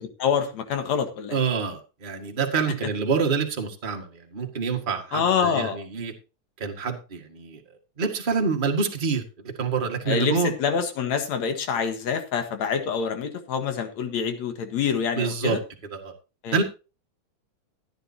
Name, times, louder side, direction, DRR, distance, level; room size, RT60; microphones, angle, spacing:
voice 1, 0.2-1.4 5.1-5.8 10.1-15.6 16.4-16.6, left 6 dB, 70° left, 7 dB, 2.8 m, -26 dB
voice 2, 1.3-6.1 6.6-7.6 8.0-9.2 9.6-10.5 15.1-15.6 15.9-16.1 16.5-16.6, right 5 dB, 20° right, 2 dB, 1.6 m, -26 dB
15.5 x 9.9 x 2.9 m, 0.31 s
omnidirectional pair, 3.3 m